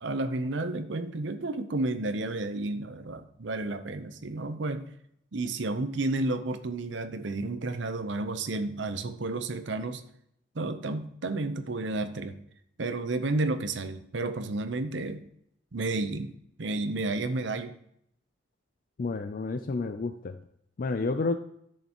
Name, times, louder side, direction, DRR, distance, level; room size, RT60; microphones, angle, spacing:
voice 1, 0.0-4.9 5.3-10.0 10.5-12.4 12.8-15.2 15.7-17.7, right 2 dB, 65° right, 9 dB, 0.7 m, -31 dB
voice 2, 19.0-20.4 20.8-21.4, left 3 dB, 45° left, 9 dB, 0.4 m, -30 dB
10.0 x 6.5 x 3.0 m, 0.72 s
head